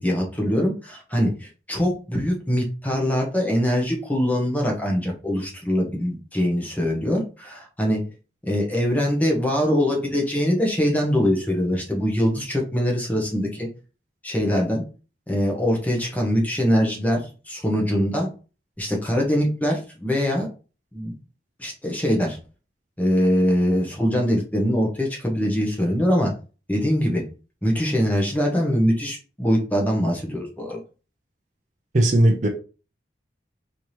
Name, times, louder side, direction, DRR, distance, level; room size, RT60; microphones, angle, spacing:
voice 1, 0.0-8.0 8.4-13.7 14.2-14.8 15.3-18.3 18.8-20.5 20.9-21.1 21.6-22.4 23.0-26.3 26.7-27.2 27.6-30.8, equal, 10° left, 0.9 m, -23 dB
voice 2, 31.9-32.5, right 1 dB, 40° right, 0.5 m, -17 dB
4.4 x 2.9 x 3.2 m
head